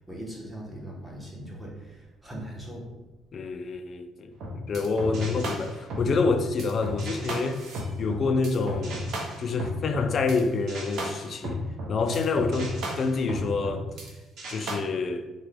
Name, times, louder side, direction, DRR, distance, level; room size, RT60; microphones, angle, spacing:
voice 1, 0.0-2.9, right 1 dB, 10° right, 0.9 m, -40 dB
voice 2, 3.3-4.3 4.7-7.6 8.0-9.1 9.4-11.6 11.9-13.9 14.5-15.3, left 4 dB, 45° left, 0.3 m, -27 dB
sound 1, 4.3-10.4 10.7-14.1 14.4-14.7, equal, 70° right, 0.7 m, -34 dB
3.4 x 2.2 x 3.3 m
cardioid pair, 115°, 0 cm